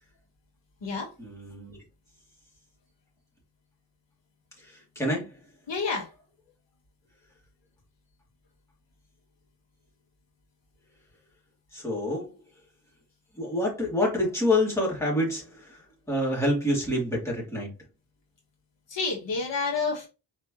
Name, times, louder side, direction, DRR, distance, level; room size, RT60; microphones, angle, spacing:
voice 1, 1.2-1.8 4.6-5.4 11.7-12.4 13.3-17.7, left 1 dB, 5° left, 2.5 m, -27 dB
voice 2, 5.7-6.1 18.9-20.1, left 4 dB, 75° left, 1.6 m, -29 dB
4.9 x 3.3 x 3.2 m
wide cardioid pair, 120°, 43 cm